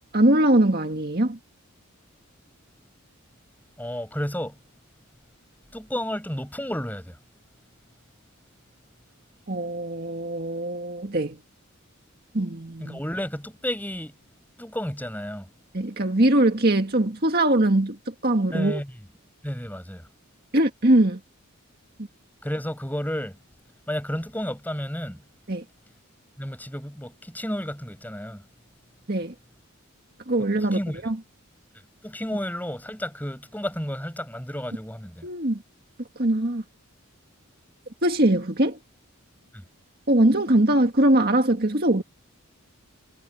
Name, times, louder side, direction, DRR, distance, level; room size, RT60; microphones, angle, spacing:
voice 1, 0.1-1.4 9.5-11.4 12.3-13.0 15.7-18.8 20.5-21.2 25.5-25.6 29.1-29.3 30.3-31.2 35.2-35.6 36.2-36.6 38.0-38.8 40.1-42.0, right 1 dB, 45° right, 1.9 m, -22 dB
voice 2, 3.8-4.6 5.7-7.2 12.8-14.2 14.6-15.5 18.5-18.9 19.4-20.1 22.4-23.4 23.9-25.2 26.4-28.5 30.6-31.0 32.0-35.3 39.5-39.6, equal, 10° left, 7.1 m, -32 dB
head